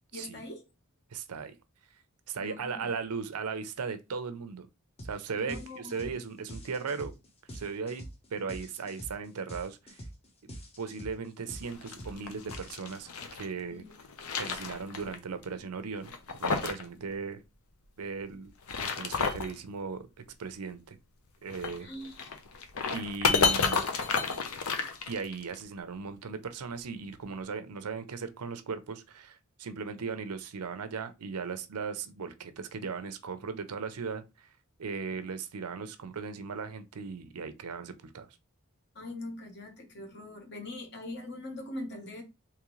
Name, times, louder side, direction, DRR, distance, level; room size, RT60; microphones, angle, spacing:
voice 1, 0.1-0.7 2.4-2.9 5.4-6.0 13.7-13.9 21.8-22.2 38.9-42.2, left 2 dB, 50° left, 1.1 m, -42 dB
voice 2, 1.1-1.5 2.3-4.7 5.0-7.1 7.5-8.0 8.3-10.0 10.4-10.5 10.8-13.8 14.4-17.4 18.0-18.5 19.0-20.1 20.4-21.0 21.4-21.9 22.9-23.8 25.1-34.5 34.8-38.3, right 5 dB, 90° right, 0.6 m, -37 dB
sound 1, 5.0-5.2 5.5-13.3, equal, 25° left, 0.8 m, -45 dB
sound 2, 11.6-13.5 13.9-15.2 15.4-15.5 16.0-16.9 17.1-17.2 18.5-19.5 21.5-25.5, left 5 dB, 75° left, 0.7 m, -31 dB
3.7 x 3.1 x 3.1 m
head